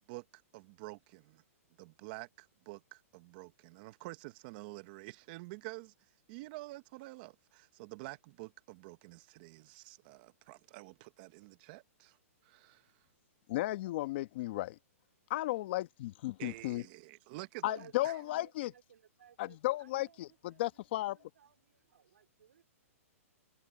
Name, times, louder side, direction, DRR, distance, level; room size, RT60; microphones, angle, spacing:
voice 1, 0.1-1.4 1.8-5.9 6.3-12.2 12.4-13.1 16.4-17.8 18.0-18.1, right 22 dB, 40° right, 1.1 m, -49 dB
voice 2, 13.5-14.8 15.3-16.8 17.6-18.7 19.4-21.3, left 17 dB, 45° left, 1.2 m, -35 dB
voice 3, 17.7-20.7 21.0-22.6, right 9 dB, 80° right, 4.0 m, -59 dB
hypercardioid pair, 150°, 8 cm